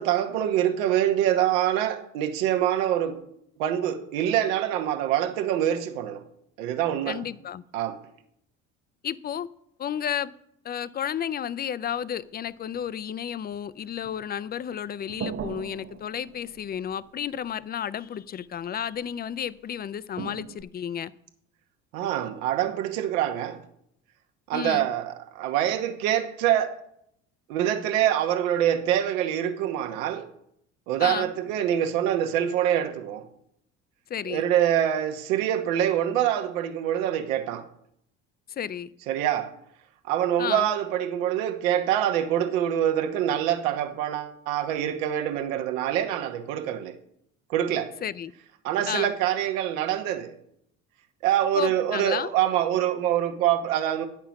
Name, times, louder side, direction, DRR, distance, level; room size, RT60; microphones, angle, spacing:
voice 1, 0.0-3.2 3.6-6.2 6.6-7.2 7.7-8.0 21.9-23.6 24.5-26.8 27.5-30.3 30.9-33.3 34.2-37.6 39.1-39.5 40.1-47.0 47.5-47.9 48.6-50.4 51.2-54.1, right 11 dB, 75° right, 1.1 m, -25 dB
voice 2, 7.1-7.6 9.0-9.5 9.8-10.3 10.6-21.1 24.5-24.9 31.0-31.3 34.1-34.4 38.5-38.9 40.4-40.7 48.0-48.3 48.9-49.1 51.5-52.3, left 9 dB, 25° left, 0.4 m, -32 dB
sound 1, 11.8-13.1 13.5-14.4 14.7-17.6 19.1-19.2 20.2-20.6, right 7 dB, 35° right, 0.7 m, -40 dB
9.2 x 5.9 x 5.8 m
hypercardioid pair, 65°, 40 cm